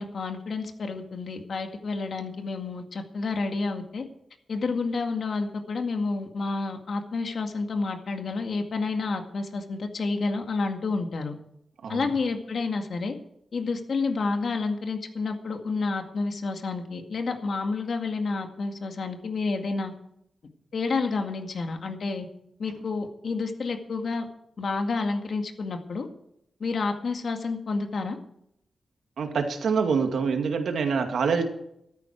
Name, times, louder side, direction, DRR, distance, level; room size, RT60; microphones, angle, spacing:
voice 1, 0.0-4.1 4.5-11.4 11.9-13.2 13.5-19.9 20.7-22.3 22.6-24.3 24.6-26.1 26.6-28.2, left 3 dB, 60° left, 5 dB, 2.0 m, -29 dB
voice 2, 29.2-31.5, right 5 dB, 90° right, 5 dB, 2.2 m, -25 dB
14.5 x 13.0 x 4.6 m, 0.75 s
wide cardioid pair, 145°, 0 cm